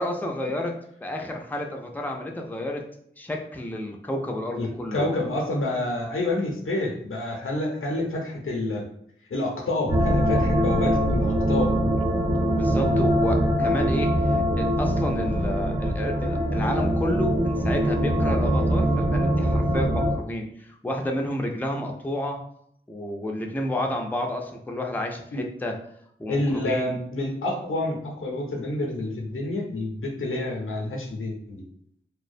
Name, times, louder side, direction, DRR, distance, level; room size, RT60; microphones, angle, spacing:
voice 1, 0.0-2.9 3.2-5.1 12.5-22.4 22.9-25.8 26.2-26.9, left 1 dB, 10° left, 2 dB, 0.4 m, -30 dB
voice 2, 4.6-8.9 9.3-11.7 25.3-25.4 26.3-31.6, left 2 dB, 75° left, 0 dB, 0.6 m, -28 dB
sound 1, 9.9-20.1, equal, 50° right, 0.7 m, -23 dB
2.4 x 2.1 x 2.5 m, 0.69 s
wide cardioid pair, 45°, 21 cm